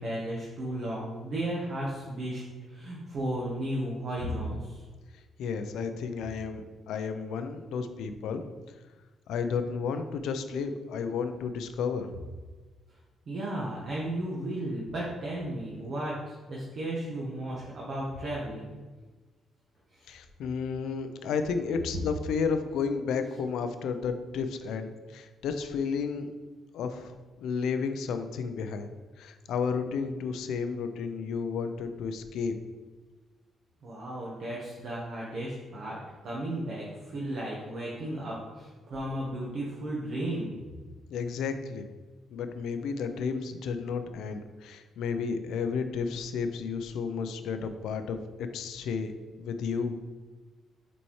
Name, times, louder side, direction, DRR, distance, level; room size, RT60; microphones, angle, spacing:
voice 1, 0.0-2.4 2.7-4.8 13.3-18.7 19.9-20.1 33.8-40.5, right 1 dB, 50° right, -5 dB, 1.2 m, -34 dB
voice 2, 5.4-8.4 9.3-12.1 20.1-26.3 26.7-28.9 29.2-32.5 41.1-41.9 42.3-50.0, left 5 dB, 85° left, 8 dB, 0.5 m, -32 dB
7.1 x 4.3 x 3.2 m, 1.3 s
cardioid pair, 125°, 0 cm